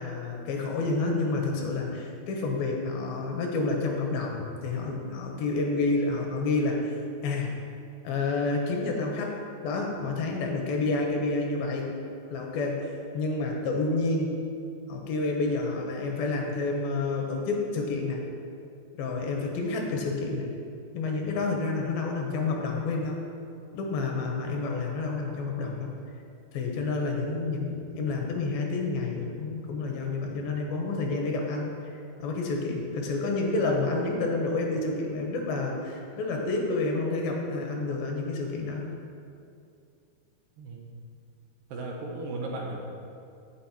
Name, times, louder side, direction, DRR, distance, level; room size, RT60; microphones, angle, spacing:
voice 1, 0.0-7.0 7.2-7.6 8.0-9.3 9.6-11.9 12.3-12.9 13.1-14.4 14.9-18.2 19.0-20.5 20.9-23.2 23.7-25.9 26.5-31.7 32.2-38.9, left 3 dB, 80° left, 1 dB, 2.7 m, -29 dB
voice 2, 40.6-40.9 41.7-42.8, right 2 dB, 75° right, -1 dB, 2.3 m, -35 dB
15.5 x 5.4 x 2.9 m, 2.5 s
omnidirectional pair, 4.4 m